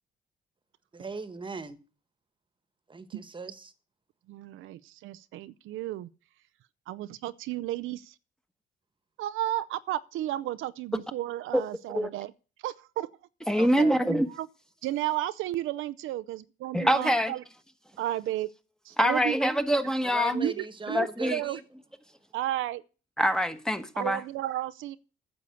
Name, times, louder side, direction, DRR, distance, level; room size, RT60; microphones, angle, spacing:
voice 1, 0.9-1.8 2.9-3.7 13.6-14.0 20.0-21.6, right 3 dB, 25° right, 1.3 m, -39 dB
voice 2, 4.3-6.1 6.9-8.1 9.2-12.3 12.6-13.1 13.8-14.0 14.3-14.5 14.8-17.4 18.0-18.5 18.8-19.4 20.3-21.6 22.3-22.8 24.0-25.0, right 14 dB, 85° right, 0.6 m, -33 dB
voice 3, 13.5-14.3 16.7-17.3 19.0-20.5 20.9-21.4 23.2-24.2, equal, 5° left, 1.3 m, -25 dB
9.5 x 7.1 x 8.3 m
cardioid pair, 90°, 20 cm